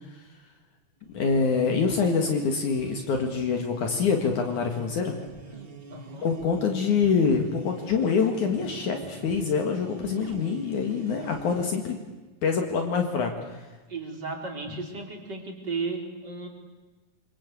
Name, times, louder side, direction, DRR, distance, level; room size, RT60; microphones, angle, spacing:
voice 1, 1.1-5.2 6.2-12.0 12.4-13.7, left 5 dB, 60° left, 3 dB, 3.2 m, -25 dB
sound 1, 1.1-12.1, right 2 dB, 50° right, 0.6 m, -43 dB
voice 2, 5.9-6.3 13.9-16.5, right 4 dB, 30° right, 2 dB, 4.5 m, -34 dB
27.5 x 25.5 x 8.4 m, 1.2 s
omnidirectional pair, 4.0 m